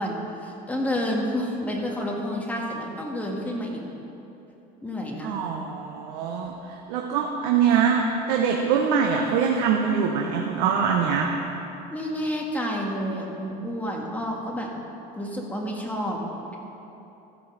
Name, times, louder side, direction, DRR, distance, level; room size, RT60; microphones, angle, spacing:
voice 1, 0.0-3.8 4.8-5.4 11.9-14.7 15.2-16.2, equal, 5° left, -1 dB, 1.8 m, -29 dB
voice 2, 5.2-11.3, right 6 dB, 85° right, 1 dB, 0.9 m, -23 dB
14.5 x 5.5 x 6.6 m, 3.0 s
supercardioid pair, 110°, 20 cm